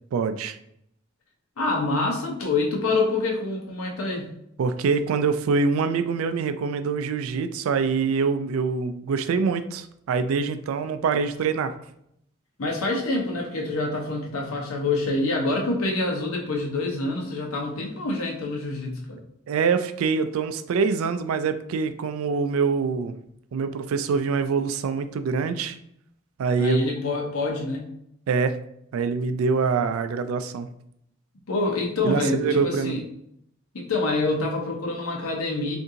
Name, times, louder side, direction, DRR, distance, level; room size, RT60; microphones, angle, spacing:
voice 1, 0.1-0.6 4.6-11.7 19.5-23.1 23.5-25.8 26.4-26.8 28.3-28.6 28.9-30.7 32.0-33.0, right 5 dB, 80° right, 10 dB, 0.3 m, -24 dB
voice 2, 1.6-4.3 12.6-19.2 26.6-27.9 31.5-33.0 33.7-35.8, left 2 dB, 90° left, 0 dB, 0.8 m, -26 dB
2.7 x 2.6 x 3.7 m, 0.73 s
head